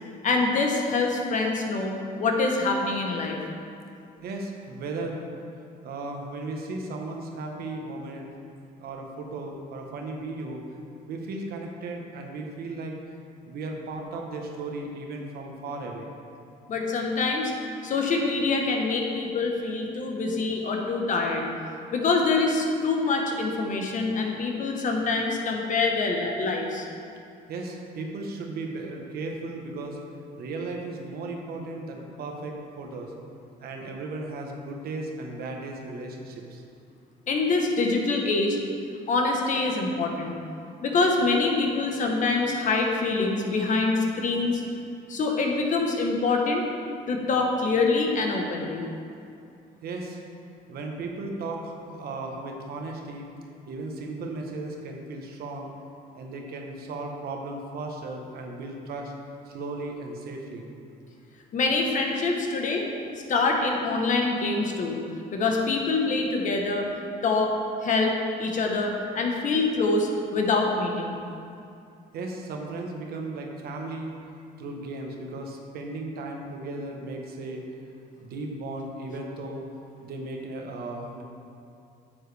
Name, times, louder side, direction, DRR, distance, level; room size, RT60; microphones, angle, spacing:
voice 1, 0.2-3.4 16.7-17.5 17.8-21.4 21.9-26.9 37.3-38.6 39.1-40.3 40.8-44.6 45.1-46.6 47.1-48.8 61.5-62.9 63.3-65.0 65.3-66.9 67.2-67.5 67.8-68.1 68.4-71.2, left 3 dB, 50° left, 1 dB, 1.2 m, -25 dB
voice 2, 4.2-5.2 5.8-8.3 8.8-10.6 11.1-13.0 13.4-16.1 27.5-30.0 30.4-33.1 33.6-36.6 49.8-50.2 50.7-53.3 53.7-55.7 56.1-59.1 59.4-60.6 72.1-74.2 74.6-77.6 78.2-79.6 80.0-81.2, right 2 dB, 65° right, 1 dB, 1.2 m, -36 dB
9.4 x 7.3 x 3.4 m, 2.5 s
cardioid pair, 110°, 17 cm